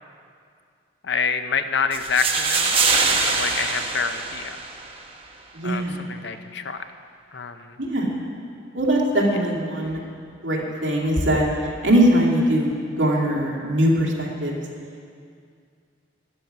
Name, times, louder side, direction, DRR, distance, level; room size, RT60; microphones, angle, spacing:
voice 1, 1.0-2.8 3.3-4.6 5.6-6.8 7.3-7.8, left 5 dB, 55° left, 9 dB, 0.6 m, -27 dB
sound 1, 1.9-4.9, right 4 dB, 25° right, 1.0 m, -23 dB
voice 2, 5.5-6.0 7.8-8.1 8.7-10.0 10.4-11.5 11.8-14.6, right 1 dB, 65° right, -3 dB, 2.4 m, -21 dB
12.5 x 11.0 x 5.9 m, 2.3 s
head